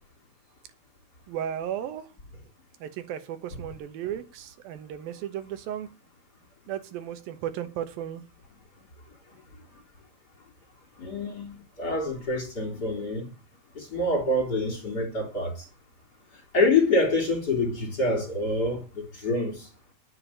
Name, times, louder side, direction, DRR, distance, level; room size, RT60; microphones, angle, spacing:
voice 1, 1.3-2.1 2.8-5.9 6.7-8.2, right 10 dB, 90° right, 3.1 m, -35 dB
voice 2, 11.0-13.3 13.8-15.5 16.5-19.6, left 2 dB, 30° left, 3.8 m, -26 dB
10.0 x 7.2 x 8.5 m
omnidirectional pair, 4.0 m